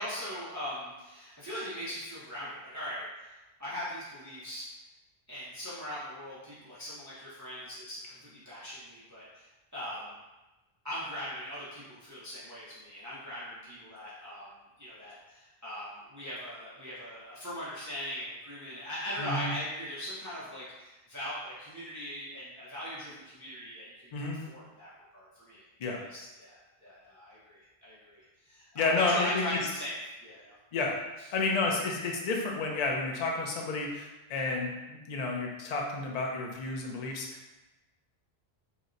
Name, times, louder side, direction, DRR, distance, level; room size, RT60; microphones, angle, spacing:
voice 1, 0.0-3.0 3.6-4.6 5.3-9.5 9.7-10.2 10.8-14.5 14.8-25.6 26.1-29.9 30.2-30.5, equal, 20° right, -10 dB, 0.6 m, -40 dB
voice 2, 19.2-19.5 24.1-24.4 25.8-26.0 28.7-29.6 30.7-31.0 31.3-37.5, left 3 dB, 50° left, 0 dB, 0.5 m, -31 dB
2.9 x 2.1 x 3.7 m, 1.1 s
omnidirectional pair, 1.1 m